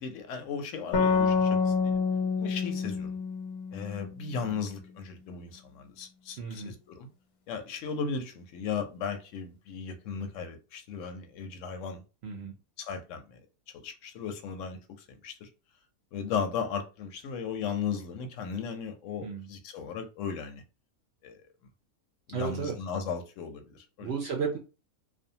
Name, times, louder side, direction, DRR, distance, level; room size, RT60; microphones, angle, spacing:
voice 1, 0.0-2.0 2.4-3.1 3.7-6.4 6.6-7.1 7.5-12.0 12.8-13.2 13.8-14.8 15.2-15.5 16.1-20.6 21.2-21.4 22.3-24.1, left 6 dB, 70° left, 0.8 m, -36 dB
sound 1, 0.9-4.4, left 5 dB, 85° left, 1.2 m, -27 dB
voice 2, 6.4-6.7 12.2-12.5 19.2-19.5 22.3-22.8 24.0-24.6, right 5 dB, 70° right, 0.6 m, -33 dB
2.5 x 2.3 x 2.7 m
omnidirectional pair, 1.5 m